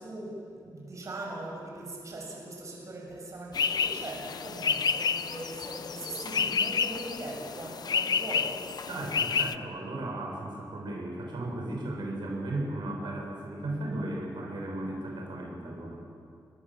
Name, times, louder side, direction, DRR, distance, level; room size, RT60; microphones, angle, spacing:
voice 1, 0.0-8.9, right 2 dB, 45° right, -1 dB, 7.2 m, -40 dB
sound 1, 3.5-9.5, left 6 dB, 60° left, 0.8 m, -30 dB
voice 2, 8.9-16.0, right 1 dB, 90° right, 0 dB, 6.5 m, -35 dB
29.5 x 23.0 x 7.5 m, 2.5 s
wide cardioid pair, 175°, 8 cm